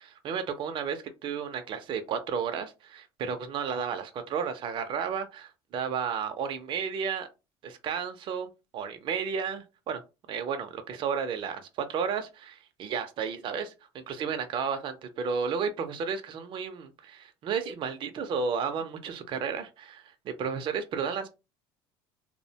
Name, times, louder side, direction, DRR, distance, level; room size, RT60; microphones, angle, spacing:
voice 1, 0.0-7.3 7.6-10.0 10.3-21.3, right 6 dB, 45° right, 0.4 m, -33 dB
2.5 x 2.0 x 2.7 m
cardioid pair, 115°, 12 cm